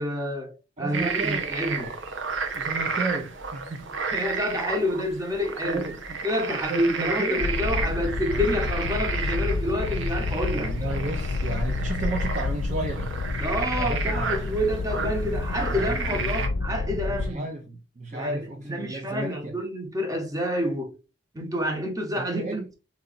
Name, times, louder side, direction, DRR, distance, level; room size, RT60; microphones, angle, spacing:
voice 1, 0.0-2.0 4.0-5.8 6.2-10.7 13.4-17.5 18.1-21.0 21.3-22.6, equal, 20° right, 1.0 m, -28 dB
voice 2, 0.8-1.7 2.5-3.9 5.6-6.2 6.5-7.4 7.9-8.0 10.5-13.1 13.8-14.4 15.0-15.1 15.7-16.3 17.1-19.5 22.1-22.7, right 2 dB, 40° right, 0.6 m, -33 dB
sound 1, 0.9-16.5, right 5 dB, 80° right, 0.8 m, -32 dB
sound 2, 7.4-17.3, left 3 dB, 85° left, 0.4 m, -29 dB
4.0 x 3.0 x 3.9 m
head